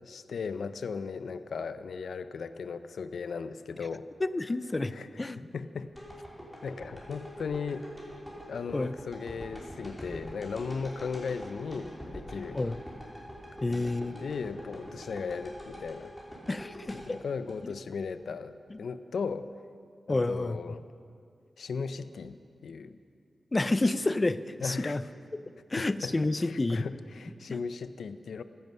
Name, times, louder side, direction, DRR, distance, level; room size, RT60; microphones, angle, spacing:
voice 1, 0.0-4.1 4.9-5.1 5.3-5.9 6.6-7.9 8.5-12.6 13.7-16.1 16.9-19.5 20.1-20.8 21.6-22.4 22.6-23.0 24.6-25.0 25.8-28.4, left 5 dB, 85° left, 12 dB, 0.5 m, -37 dB
voice 2, 4.2-5.4 8.7-8.9 12.5-12.8 13.6-14.2 16.5-17.2 17.6-17.7 18.7-18.8 20.1-20.7 23.5-25.0 25.7-26.9, left 2 dB, 25° left, 15 dB, 0.4 m, -29 dB
sound 1, 5.9-18.1 18.6-18.7, equal, 5° left, 3.2 m, -44 dB
15.0 x 10.5 x 5.5 m, 2.4 s
wide cardioid pair, 125°, 0 cm